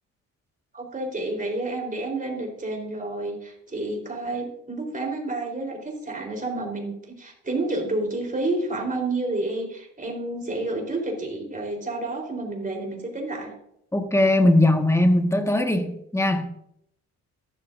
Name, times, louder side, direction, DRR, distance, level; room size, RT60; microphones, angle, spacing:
voice 1, 0.7-13.5, right 2 dB, 25° right, 1 dB, 3.9 m, -30 dB
voice 2, 13.9-16.5, left 1 dB, 10° left, 5 dB, 1.6 m, -20 dB
14.0 x 12.5 x 2.6 m, 0.75 s
cardioid pair, 90°, 30 cm